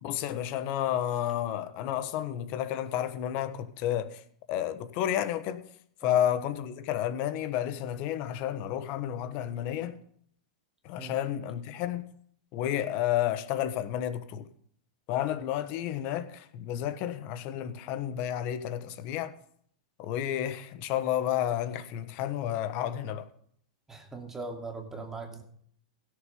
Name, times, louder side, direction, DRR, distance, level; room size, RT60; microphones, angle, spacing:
voice 1, 0.0-4.2 4.5-5.6 6.0-10.0 10.8-12.1 12.5-14.5 15.1-19.3 20.0-23.3, left 11 dB, 45° left, 1.2 m, -31 dB
voice 2, 23.9-25.4, right 3 dB, 10° right, 2.5 m, -40 dB
16.5 x 6.8 x 5.4 m
hypercardioid pair, 125°, 4 cm